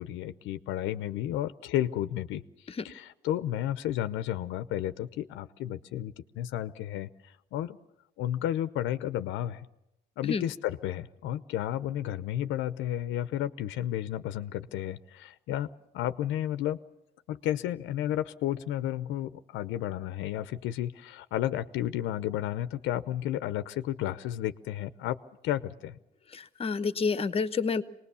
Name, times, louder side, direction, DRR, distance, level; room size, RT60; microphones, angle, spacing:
voice 1, 0.0-7.8 8.2-9.7 10.2-15.7 15.9-16.8 17.3-25.2 25.4-26.0, left 12 dB, 80° left, 12 dB, 0.8 m, -32 dB
voice 2, 26.3-27.8, left 5 dB, 30° left, 13 dB, 1.1 m, -29 dB
25.0 x 20.0 x 7.0 m, 0.85 s
cardioid pair, 130°, 20 cm